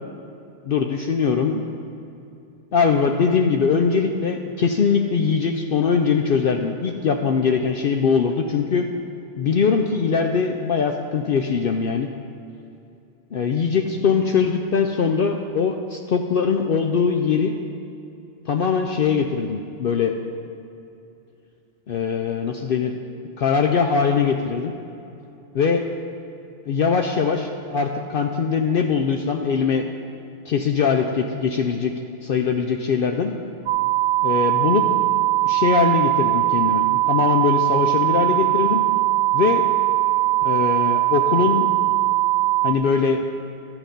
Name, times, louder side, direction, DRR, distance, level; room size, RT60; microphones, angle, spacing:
voice 1, 0.7-1.7 2.7-8.9 9.4-12.1 13.3-17.5 18.5-20.2 21.9-22.9 23.4-24.7 25.6-25.8 26.7-29.8 30.5-31.9 32.2-33.3 34.2-34.9 35.4-38.8 39.3-39.7 40.4-41.7 42.6-43.3, left 5 dB, 60° left, 4 dB, 0.7 m, -21 dB
sound 1, 33.7-42.7, right 16 dB, 90° right, 0.9 m, -20 dB
11.5 x 8.0 x 5.2 m, 2.7 s
omnidirectional pair, 1.1 m